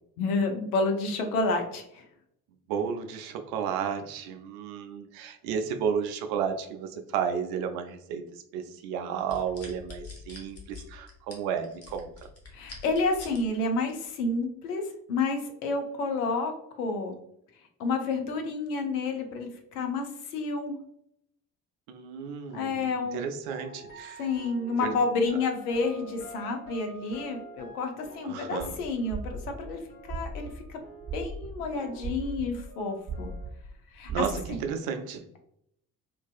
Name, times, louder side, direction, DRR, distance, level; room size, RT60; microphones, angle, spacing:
voice 1, 0.2-2.0 12.5-14.8 15.1-17.2 17.8-20.8 22.5-23.2 24.2-29.8 30.1-30.8 31.1-33.3 33.9-34.2, left 3 dB, 75° left, 4 dB, 0.6 m, -30 dB
voice 2, 2.7-8.2 8.5-12.1 21.9-24.2 24.8-24.9 28.2-28.8 34.1-35.2, right 7 dB, 55° right, 6 dB, 0.5 m, -32 dB
sound 1, 9.2-13.4 13.9-14.1, left 4 dB, 35° left, 0.9 m, -45 dB
sound 2, 23.4-31.5 31.7-33.5, right 1 dB, 60° left, 1.2 m, -48 dB
sound 3, 28.6-28.8 29.0-31.5 31.8-32.6 33.0-34.5, right 5 dB, 10° right, 0.7 m, -37 dB
2.5 x 2.2 x 2.3 m, 0.74 s
figure-of-eight pair, 50°, 45 cm